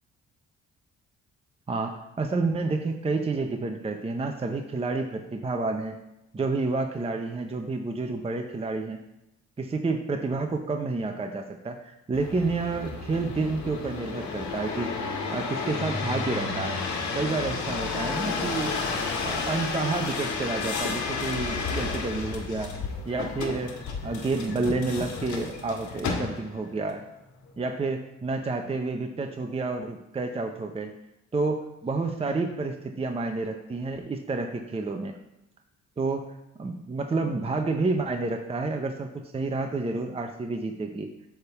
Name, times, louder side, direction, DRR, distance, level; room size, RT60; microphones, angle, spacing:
voice 1, 1.7-6.0 6.3-9.0 9.6-14.9 15.3-16.8 17.1-18.7 19.2-22.7 23.1-23.8 24.0-27.0 27.6-30.9 31.3-35.2 36.0-36.3 36.6-41.1, right 3 dB, 20° right, 4 dB, 0.7 m, -29 dB
sound 1, 12.1-26.7 27.3-27.8, left 4 dB, 70° left, 1.6 m, -32 dB
8.9 x 3.6 x 6.8 m, 0.91 s
cardioid pair, 90°, 30 cm